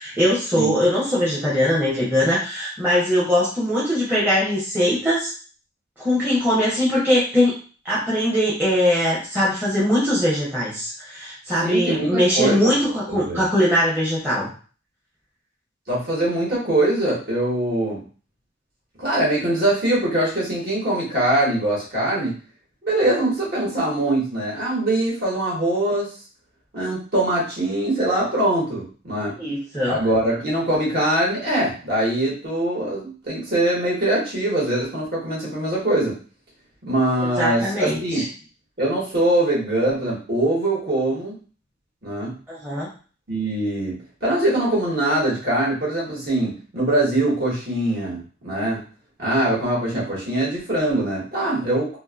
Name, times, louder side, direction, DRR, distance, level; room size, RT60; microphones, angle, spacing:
voice 1, 0.0-5.3 6.0-7.5 7.8-14.5 29.4-30.0 37.2-38.2 42.5-42.9, equal, 10° right, -8 dB, 0.8 m, -21 dB
voice 2, 11.6-12.7 13.1-13.4 15.9-18.0 19.0-22.4 22.8-26.1 26.7-29.3 29.8-36.2 36.8-38.3 38.8-41.3 42.0-42.3 43.3-48.8 49.2-51.9, right 1 dB, 50° right, -5 dB, 1.3 m, -22 dB
2.7 x 2.6 x 2.4 m, 0.38 s
head